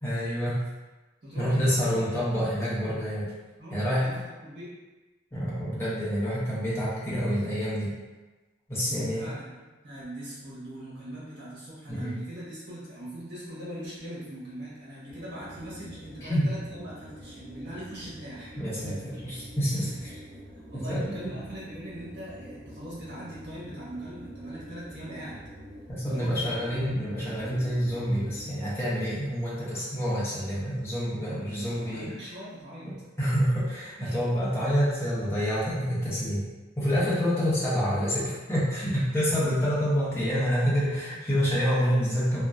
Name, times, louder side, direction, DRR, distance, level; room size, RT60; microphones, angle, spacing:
voice 1, 0.0-0.6 1.4-3.3 3.7-4.1 5.3-7.9 8.7-9.3 11.9-12.2 16.3-16.5 18.6-19.9 20.7-21.3 25.9-32.1 33.2-36.5 36.8-42.4, equal, 15° left, -9 dB, 0.6 m, -27 dB
voice 2, 1.2-2.1 3.6-4.8 8.9-9.5 9.8-18.6 19.7-20.2 20.5-25.4 26.0-26.5 31.2-32.9 34.0-34.1 38.9-39.0, right 1 dB, 55° right, -8 dB, 1.0 m, -41 dB
sound 1, 15.1-28.7, equal, 30° right, 0.6 m, -46 dB
2.5 x 2.2 x 2.2 m, 1.2 s
head